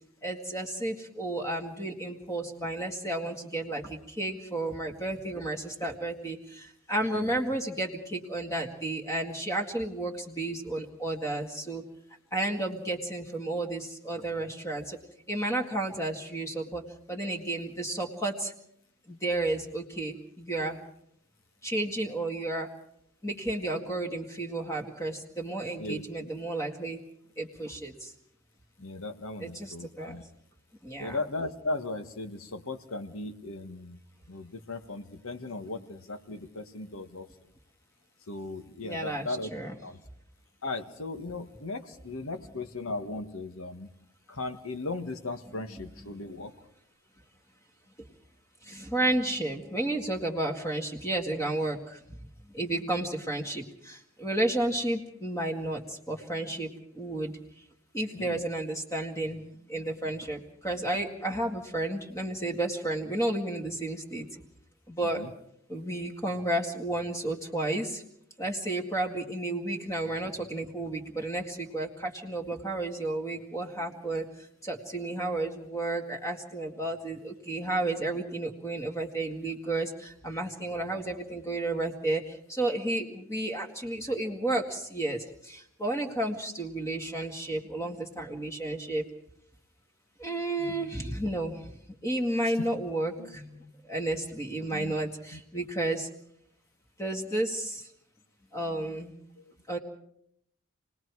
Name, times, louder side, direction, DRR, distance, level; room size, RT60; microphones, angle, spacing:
voice 1, 0.2-11.8 12.3-15.0 15.3-16.8 17.1-18.5 19.1-20.8 21.6-22.7 23.2-27.0 27.4-28.1 29.4-30.2 30.8-31.2 38.8-39.7 45.8-46.2 48.7-52.0 52.5-57.3 57.9-59.4 59.7-64.3 64.9-65.2 65.7-68.0 68.4-74.3 74.6-89.1 90.2-91.7 92.0-96.1 97.0-97.8 98.5-99.1 99.7-99.8, right 2 dB, 15° left, 2 dB, 1.9 m, -32 dB
voice 2, 25.8-26.3 28.8-30.2 31.0-34.0 34.3-37.3 38.3-39.5 39.8-40.0 40.6-43.9 44.3-46.5 58.1-58.4 65.2-65.3 91.0-91.2 92.4-92.7 93.0-93.3 94.7-94.9 95.3-95.4 99.4-99.5, left 2 dB, 75° left, 8 dB, 1.5 m, -37 dB
28.5 x 19.5 x 4.8 m, 0.72 s
head